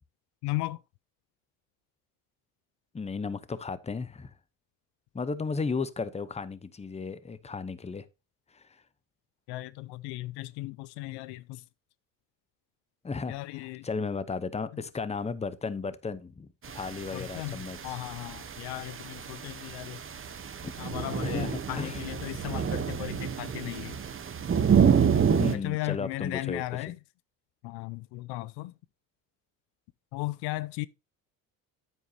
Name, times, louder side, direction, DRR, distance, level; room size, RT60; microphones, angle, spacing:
voice 1, 0.4-0.8 9.5-11.6 13.3-13.9 14.7-14.8 17.1-20.0 20.8-24.0 25.5-27.0 27.6-28.7 30.1-30.9, left 19 dB, 75° left, 0.6 m, -36 dB
voice 2, 2.9-4.3 5.1-8.0 8.5-8.6 13.0-13.4 13.8-18.0 20.6-20.7 21.2-22.0 25.2-26.9, left 4 dB, 15° left, 0.8 m, -34 dB
sound 1, 16.6-25.6, right 7 dB, 30° right, 1.0 m, -28 dB
9.2 x 8.6 x 2.8 m
supercardioid pair, 80°, 41 cm